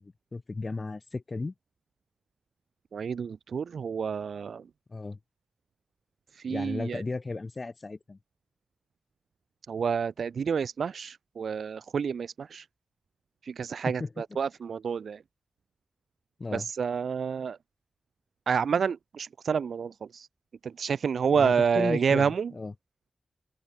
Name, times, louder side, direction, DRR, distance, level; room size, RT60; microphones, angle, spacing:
voice 1, 0.0-1.5 4.9-5.2 6.5-8.2 13.8-14.4 16.4-16.7 21.3-22.7, left 3 dB, 30° left, 3.9 m, -35 dB
voice 2, 2.9-4.6 6.3-7.0 9.7-12.7 13.4-14.0 14.4-15.2 16.5-17.6 18.5-20.3 20.6-22.5, right 6 dB, 80° right, 0.6 m, -29 dB
open air
wide cardioid pair, 160°, 0 cm